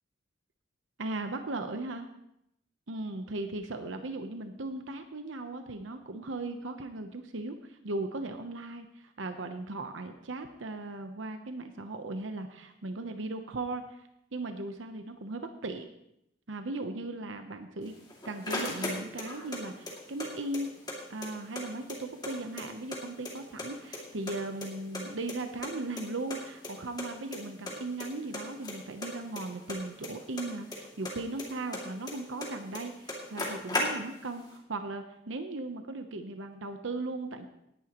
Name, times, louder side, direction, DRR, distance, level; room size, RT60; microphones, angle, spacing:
voice 1, 1.0-2.1 2.9-15.9 16.5-18.0 18.2-20.7 21.1-37.5, right 2 dB, 85° right, 7 dB, 0.9 m, -37 dB
sound 1, 17.9-19.6 19.9-21.0 21.2-21.3 21.6-23.0 23.2-24.0 24.3-25.7 26.0-26.1 26.3-26.4 26.6-26.7 27.0-27.4 27.7-28.1 28.3-30.8 31.0-32.5 32.7-32.8 33.1-34.3, left 2 dB, 20° left, 2.4 m, -36 dB
18.0 x 11.0 x 3.0 m, 0.79 s
head